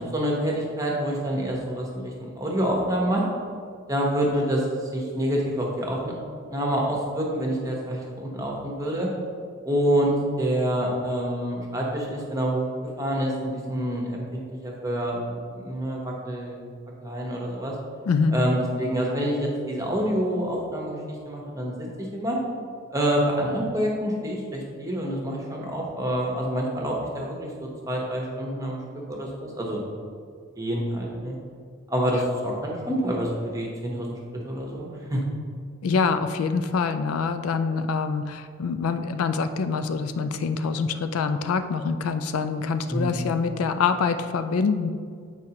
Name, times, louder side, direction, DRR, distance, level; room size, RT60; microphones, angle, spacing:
voice 1, 0.0-3.2 3.9-6.2 6.5-9.1 9.6-12.7 13.0-15.2 15.5-16.6 17.0-17.7 18.3-21.0 21.2-22.4 22.9-29.8 30.6-31.4 31.9-34.2 34.4-35.2 42.9-43.3, equal, 15° right, -2 dB, 0.9 m, -27 dB
voice 2, 18.1-18.4 35.8-44.9, left 5 dB, 80° left, 9 dB, 0.4 m, -25 dB
8.0 x 4.8 x 2.9 m, 2.1 s
head